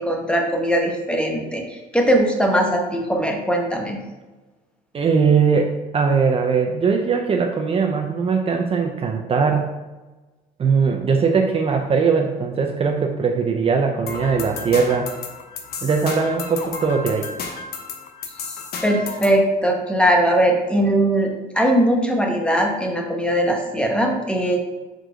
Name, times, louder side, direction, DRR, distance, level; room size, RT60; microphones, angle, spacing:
voice 1, 0.0-4.0 18.8-24.6, right 1 dB, 5° left, 2 dB, 1.1 m, -20 dB
voice 2, 4.9-9.7 10.6-15.1 15.8-17.3, right 5 dB, 35° right, 3 dB, 0.6 m, -20 dB
sound 1, 14.1-19.4, left 4 dB, 65° left, 0.9 m, -33 dB
4.6 x 4.5 x 5.0 m, 1.2 s
cardioid pair, 110°, 17 cm